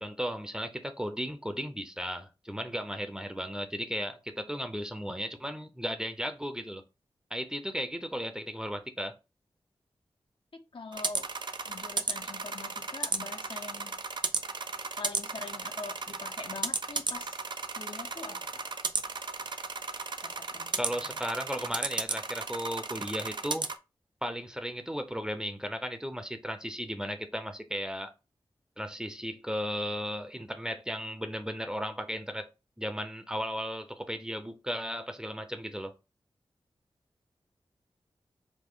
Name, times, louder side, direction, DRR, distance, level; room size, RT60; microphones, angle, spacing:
voice 1, 0.0-6.8 7.3-9.1 20.8-23.7 24.2-28.1 28.8-32.5 32.8-35.9, equal, 5° right, 0.7 m, -35 dB
voice 2, 10.5-11.3 11.7-14.0 15.0-17.4 17.7-18.7 20.2-21.2, left 4 dB, 60° left, 0.7 m, -44 dB
sound 1, 10.9-23.7, right 4 dB, 50° right, 0.5 m, -35 dB
5.1 x 2.1 x 3.7 m
wide cardioid pair, 60°, 10 cm